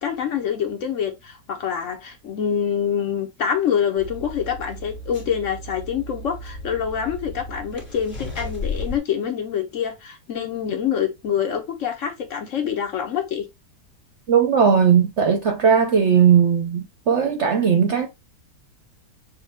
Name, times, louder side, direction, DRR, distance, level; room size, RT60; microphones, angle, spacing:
voice 1, 0.0-13.5, left 8 dB, 60° left, 1.0 m, -26 dB
sound 1, 4.0-9.0, left 2 dB, 30° left, 1.9 m, -34 dB
voice 2, 14.3-18.1, right 7 dB, 60° right, 0.8 m, -18 dB
6.4 x 2.2 x 3.5 m
omnidirectional pair, 1.7 m